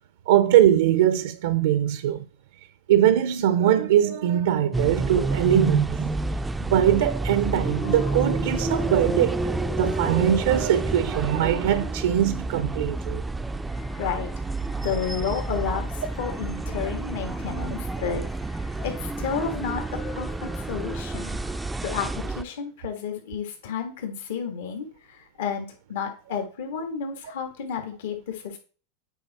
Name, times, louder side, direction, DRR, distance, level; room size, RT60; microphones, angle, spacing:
voice 1, 0.3-2.2 2.9-6.1 6.6-9.4 9.8-13.2, right 11 dB, 80° right, 0.5 m, -21 dB
sound 1, 4.7-22.4, right 3 dB, 10° right, 0.3 m, -29 dB
sound 2, 7.5-22.0, left 7 dB, 45° left, 0.8 m, -42 dB
voice 2, 13.9-14.3 14.8-18.2 18.5-19.8 20.1-20.3 20.5-21.4 21.8-28.6, left 7 dB, 75° left, 1.7 m, -31 dB
8.3 x 4.6 x 4.1 m
supercardioid pair, 135°, 0 cm